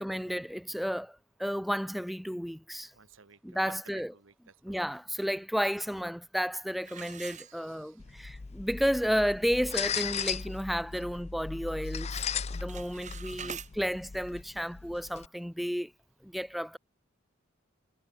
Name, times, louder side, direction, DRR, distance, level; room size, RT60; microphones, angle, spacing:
voice 1, 0.0-2.9 3.4-4.1 4.6-12.3 12.5-15.9 16.2-16.8, equal, ahead, 0.9 m, -32 dB
voice 2, 2.9-4.8 7.5-7.9 13.3-13.6, right 4 dB, 70° right, 1.6 m, -54 dB
sound 1, 6.8-8.1 8.6-8.7 9.2-9.3 9.7-10.0 10.4-11.6 11.8-12.2 12.4-13.7, right 7 dB, 35° right, 5.9 m, -45 dB
sound 2, 8.0-15.3, left 7 dB, 30° left, 0.5 m, -37 dB
head